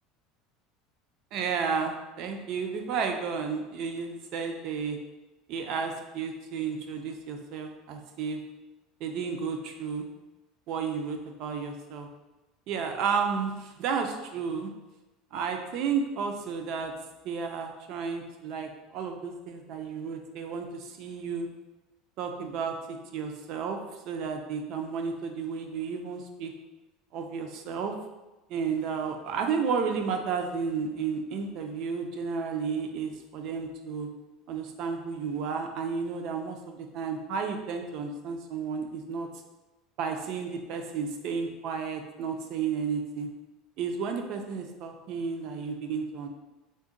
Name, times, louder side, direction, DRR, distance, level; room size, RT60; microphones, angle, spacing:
voice 1, 1.3-5.0 5.5-8.4 9.0-10.1 10.7-12.1 12.7-14.7 15.3-16.9 17.2-21.5 22.2-23.8 24.0-26.5 27.1-27.9 28.5-34.1 34.5-39.3 40.0-43.3 43.8-46.3, right 5 dB, 50° right, 4 dB, 0.4 m, -32 dB
3.8 x 2.1 x 3.7 m, 1.1 s
cardioid pair, 160°, 0 cm